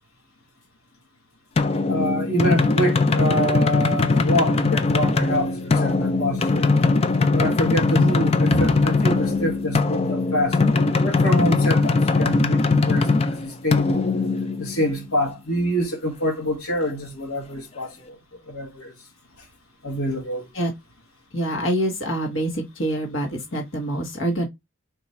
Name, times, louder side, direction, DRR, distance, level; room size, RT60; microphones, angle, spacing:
sound 1, 1.6-15.1, left 3 dB, 30° left, 0.3 m, -21 dB
voice 1, 1.9-6.6 7.3-10.6 11.0-14.0 14.6-18.2 18.5-18.9 19.4-19.5 19.8-20.5, equal, 85° left, 1.3 m, -26 dB
voice 2, 21.3-24.5, right 1 dB, 60° left, 1.1 m, -25 dB
4.0 x 2.3 x 4.1 m
head